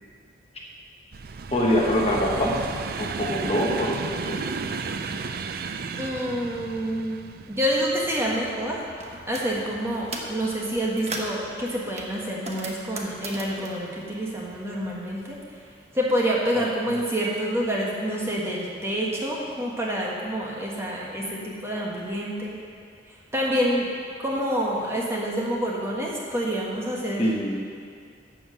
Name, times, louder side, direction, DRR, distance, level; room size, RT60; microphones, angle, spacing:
sound 1, 1.1-12.2 12.9-13.5 14.4-14.6 14.9-15.1, right 4 dB, 55° right, 0.4 m, -35 dB
voice 1, 1.5-2.6 3.0-4.4 16.5-16.6 27.2-27.6, equal, 30° left, -2 dB, 1.2 m, -24 dB
voice 2, 6.0-7.2 7.5-8.8 9.3-15.4 15.9-22.6 23.3-23.9 24.2-27.3, equal, 15° right, -4 dB, 1.5 m, -27 dB
sound 2, 9.0-9.5 9.9-10.4 10.8-11.4 12.0-14.9 15.2-16.3, right 2 dB, 35° right, 1.0 m, -37 dB
11.5 x 5.0 x 7.6 m, 2.3 s
head